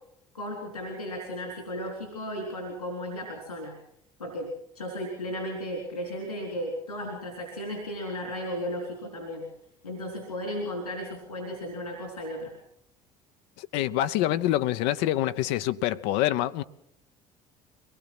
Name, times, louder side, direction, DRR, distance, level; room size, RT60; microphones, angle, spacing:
voice 1, 0.3-3.8 4.2-9.5 9.8-12.5, equal, 90° left, 3.7 m, -35 dB
voice 2, 13.6-16.6, left 14 dB, 65° left, 0.8 m, -26 dB
23.0 x 19.0 x 6.0 m
figure-of-eight pair, 60°, 19 cm